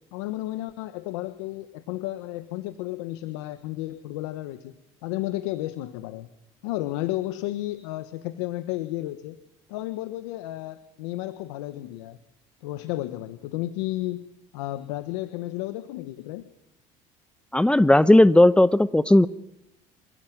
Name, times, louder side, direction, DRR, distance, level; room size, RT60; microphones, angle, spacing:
voice 1, 0.1-6.3 6.6-9.4 9.7-12.2 12.6-14.3 14.5-16.5, left 16 dB, 85° left, 11 dB, 1.4 m, -32 dB
voice 2, 17.5-19.3, left 1 dB, 5° left, 14 dB, 0.9 m, -16 dB
28.0 x 16.5 x 9.4 m, 0.85 s
supercardioid pair, 90°, 15 cm